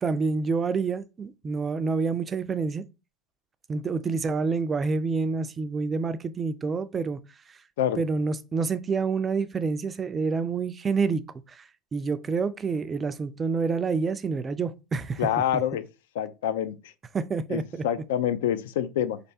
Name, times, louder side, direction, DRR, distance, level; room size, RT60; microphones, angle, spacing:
voice 1, 0.0-2.8 3.7-7.2 7.5-7.6 8.0-11.2 11.5-15.2 15.5-15.6 17.1-17.9, right 4 dB, 20° right, 0.3 m, -28 dB
voice 2, 15.2-15.8 16.1-16.9 17.5-19.2, left 10 dB, 85° left, 0.4 m, -27 dB
3.9 x 3.3 x 2.8 m
supercardioid pair, 125°, 0 cm